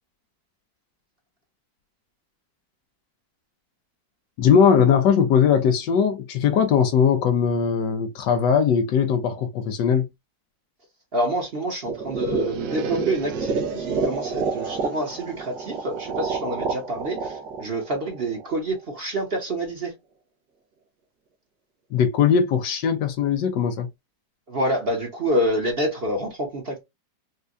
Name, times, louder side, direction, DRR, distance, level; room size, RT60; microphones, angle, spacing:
voice 1, 4.4-10.1 21.9-23.9, left 7 dB, 80° left, 1.3 m, -20 dB
voice 2, 11.1-19.9 24.5-26.8, right 1 dB, 40° right, 0.9 m, -27 dB
sound 1, 11.9-18.8, right 4 dB, 80° right, 1.4 m, -29 dB
4.4 x 2.2 x 2.5 m
omnidirectional pair, 1.9 m